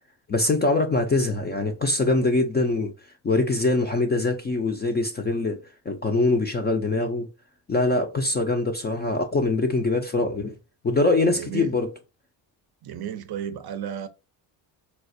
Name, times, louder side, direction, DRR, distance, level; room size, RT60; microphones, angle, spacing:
voice 1, 0.3-2.9 3.2-5.6 5.9-7.3 7.7-10.5 10.8-11.9, left 2 dB, 25° left, 0.3 m, -23 dB
voice 2, 11.3-11.7 12.8-14.1, right 9 dB, 55° right, 0.5 m, -33 dB
4.2 x 2.3 x 2.5 m
cardioid pair, 100°, 49 cm